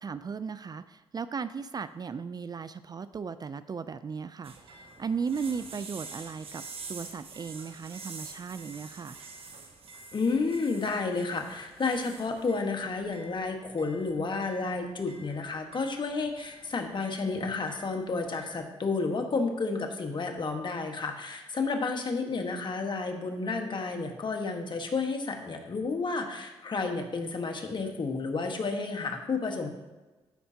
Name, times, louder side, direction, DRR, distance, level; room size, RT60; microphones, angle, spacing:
voice 1, 0.0-6.6 6.9-9.2, right 5 dB, 40° right, 14 dB, 0.4 m, -36 dB
sound 1, 4.4-18.6, right 4 dB, 60° right, 1.2 m, -48 dB
voice 2, 10.1-29.7, left 4 dB, 45° left, 4 dB, 1.4 m, -31 dB
13.5 x 5.4 x 2.8 m, 1.2 s
cardioid pair, 65°, 11 cm